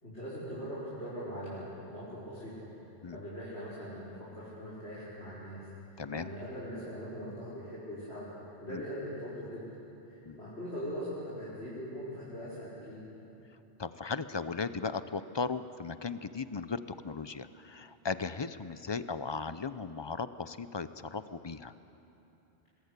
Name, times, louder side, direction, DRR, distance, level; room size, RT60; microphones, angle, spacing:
voice 1, 0.0-2.7 3.1-5.7 6.1-8.3 8.6-9.6 10.1-13.0, equal, 90° left, -10 dB, 5.4 m, -41 dB
voice 2, 6.0-6.3 8.7-8.8 10.3-10.4 13.8-21.7, left 4 dB, 30° left, 12 dB, 0.6 m, -37 dB
25.5 x 21.0 x 8.2 m, 3.0 s
omnidirectional pair, 1.1 m